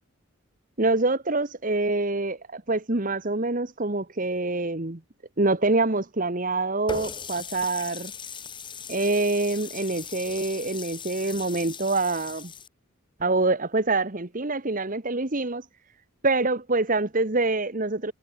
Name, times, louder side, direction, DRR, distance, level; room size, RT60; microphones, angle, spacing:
voice 1, 0.8-5.0 5.4-8.1 8.9-12.5 13.2-15.7 16.2-18.1, right 2 dB, 40° right, 1.4 m, -25 dB
Water tap faucet, 6.9-12.7, left 5 dB, 20° left, 5.1 m, -39 dB
head